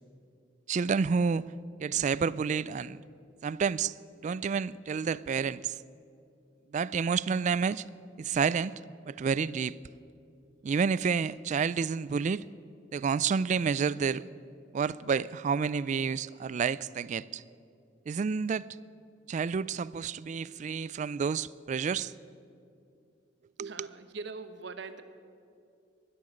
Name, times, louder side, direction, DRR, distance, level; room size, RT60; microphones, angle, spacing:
voice 1, 0.7-1.4 1.8-3.0 3.4-3.9 4.2-5.8 6.7-7.8 8.2-8.8 9.1-9.7 10.6-12.5 12.9-14.2 14.7-17.4 18.1-18.7 19.3-22.1 23.6-23.9, right 6 dB, 40° right, 0.3 m, -29 dB
voice 2, 23.6-25.0, right 4 dB, 65° right, 0.9 m, -42 dB
12.0 x 11.5 x 10.0 m
head